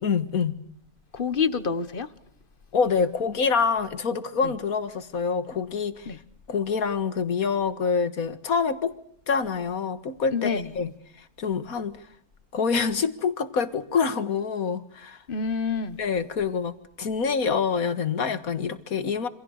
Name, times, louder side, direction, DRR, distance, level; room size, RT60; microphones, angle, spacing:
voice 1, 0.0-0.6 2.7-6.2 6.5-8.9 9.3-10.9 11.2-12.0 12.5-15.2 16.0-19.3, left 5 dB, 70° left, 2.1 m, -26 dB
voice 2, 1.1-2.1 4.4-4.5 6.1-6.2 10.3-10.7 15.3-16.0, left 5 dB, 35° left, 1.4 m, -27 dB
28.0 x 26.0 x 6.6 m
omnidirectional pair, 1.6 m